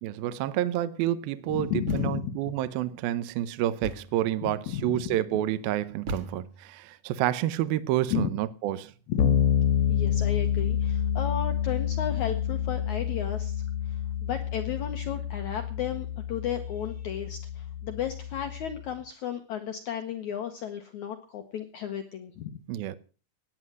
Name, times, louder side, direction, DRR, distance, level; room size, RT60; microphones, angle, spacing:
voice 1, 0.0-8.9 22.7-23.0, right 13 dB, 75° right, 2.3 m, -29 dB
voice 2, 1.5-2.4 4.4-5.2 8.1-8.3 9.1-9.4 9.9-22.5, left 9 dB, 85° left, 1.6 m, -34 dB
Thump thud, 1.9-2.4 3.8-4.3 6.1-6.7, right 2 dB, 55° right, 2.3 m, -37 dB
Bass guitar, 9.2-18.8, left 9 dB, 65° left, 2.2 m, -28 dB
16.5 x 9.6 x 6.2 m
omnidirectional pair, 5.0 m